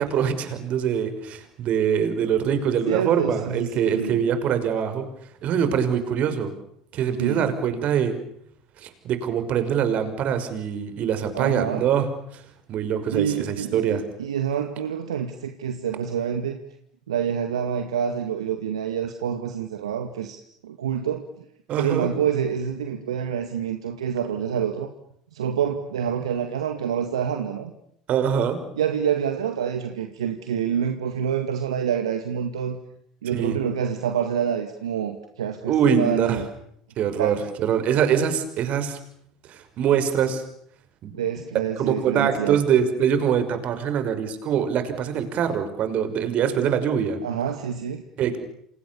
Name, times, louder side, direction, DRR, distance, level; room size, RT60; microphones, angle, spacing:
voice 1, 0.0-5.1 5.4-6.5 6.9-8.1 8.8-12.4 12.7-14.0 21.7-22.1 28.1-28.6 33.3-33.6 35.7-36.4 37.0-39.0 39.5-40.4 41.0-41.1 41.8-47.2 48.2-48.4, right 8 dB, 50° right, 9 dB, 5.9 m, -23 dB
voice 2, 2.9-4.2 7.2-7.5 11.3-11.9 13.1-16.6 17.1-21.3 21.8-24.9 25.3-27.7 28.8-32.8 33.2-36.5 37.2-37.4 41.1-42.6 47.2-48.0, right 8 dB, 85° right, 7 dB, 2.1 m, -27 dB
29.5 x 28.0 x 7.1 m, 0.71 s
hypercardioid pair, 75°, 3 cm